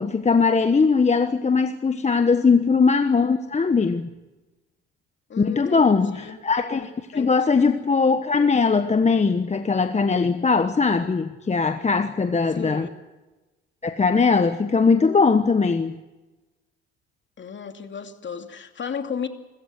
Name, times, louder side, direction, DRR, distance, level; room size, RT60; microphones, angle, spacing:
voice 1, 0.0-4.1 5.4-6.8 7.1-12.9 13.8-15.9, left 4 dB, 25° left, 9 dB, 1.2 m, -20 dB
voice 2, 2.3-2.6 5.3-6.4 6.8-7.8 12.5-12.9 17.4-19.3, left 7 dB, 40° left, 6 dB, 2.6 m, -35 dB
26.5 x 14.5 x 9.7 m, 1.1 s
supercardioid pair, 70°, 29 cm